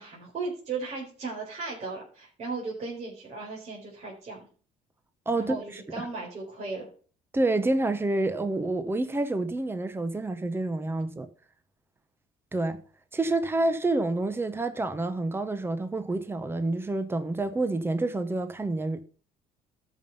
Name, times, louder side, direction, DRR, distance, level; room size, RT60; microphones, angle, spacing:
voice 1, 0.0-4.5 5.3-6.9, right 4 dB, 45° right, 4.4 m, -36 dB
voice 2, 5.3-6.1 7.3-11.3 12.5-12.8 13.1-19.0, right 2 dB, 15° right, 1.1 m, -28 dB
13.0 x 5.7 x 5.6 m
cardioid pair, 95°, 16 cm